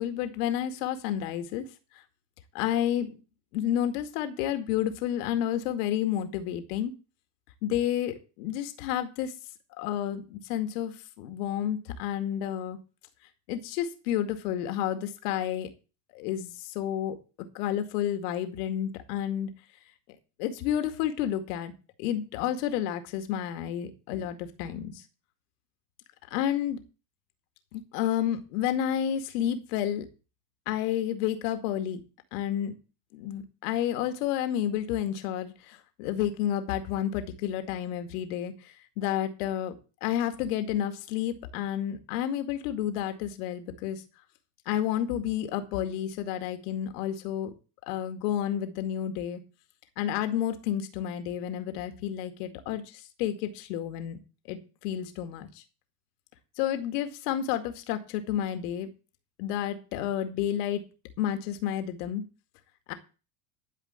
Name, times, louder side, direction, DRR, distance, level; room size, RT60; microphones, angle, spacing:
voice 1, 0.0-1.7 2.5-3.1 3.5-6.9 7.6-9.3 9.8-12.8 13.5-15.7 16.1-17.2 17.5-19.5 20.4-21.7 22.0-25.0 26.3-26.8 27.7-30.1 30.7-32.0 32.3-32.8 33.1-39.8 40.0-44.0 44.7-47.5 47.9-49.4 50.0-54.2 54.5-55.5 56.6-58.9 59.4-60.8 61.2-62.3 62.9-63.0, left 10 dB, 70° left, 8 dB, 2.2 m, -30 dB
12.0 x 5.0 x 8.1 m, 0.33 s
hypercardioid pair, 80°, 48 cm